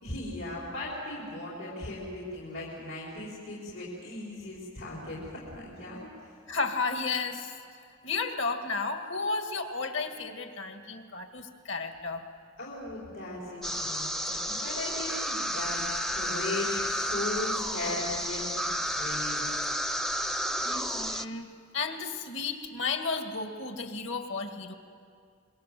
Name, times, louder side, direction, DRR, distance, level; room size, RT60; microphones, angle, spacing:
voice 1, 0.0-6.3 12.6-19.5, left 2 dB, 85° left, -6 dB, 4.9 m, -37 dB
voice 2, 6.5-7.5 8.0-12.2 20.6-24.7, left 4 dB, 65° left, 5 dB, 2.0 m, -33 dB
sound 1, 13.6-21.2, equal, ahead, 0.5 m, -31 dB
26.5 x 22.5 x 7.8 m, 2.3 s
head